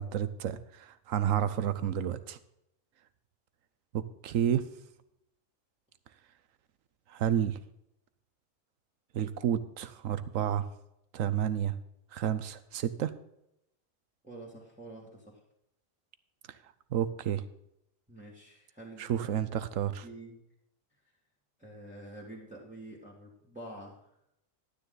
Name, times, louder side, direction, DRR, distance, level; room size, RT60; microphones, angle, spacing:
voice 1, 0.0-2.4 3.9-4.7 7.1-7.6 9.1-10.7 11.1-11.8 12.1-13.1 16.9-17.4 19.0-20.1, right 9 dB, 85° right, 14 dB, 1.2 m, -30 dB
voice 2, 14.2-15.4 18.1-19.3 20.0-20.4 21.6-24.0, right 1 dB, 5° right, -4 dB, 2.1 m, -47 dB
12.0 x 9.6 x 3.9 m, 0.80 s
omnidirectional pair, 1.3 m